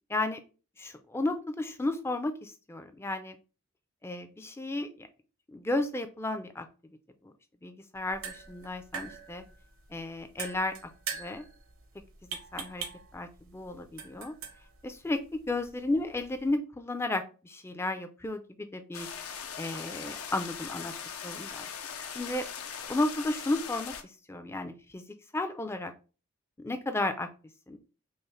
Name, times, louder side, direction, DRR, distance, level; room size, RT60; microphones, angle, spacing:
voice 1, 0.1-0.4 0.8-3.4 4.0-5.1 5.5-6.7 7.2-7.3 7.6-9.4 9.9-10.7 11.1-11.4 12.5-12.8 13.1-14.3 14.8-19.1 19.6-20.9 21.2-21.6 22.1-22.5 22.8-25.0 25.3-25.9 26.6-27.3 27.7-27.8, left 2 dB, 10° left, 8 dB, 0.3 m, -33 dB
sound 1, 7.9-16.6, right 7 dB, 65° right, 0.7 m, -44 dB
sound 2, 18.9-24.0, left 7 dB, 80° left, 0.5 m, -40 dB
5.4 x 2.1 x 3.1 m, 0.34 s
head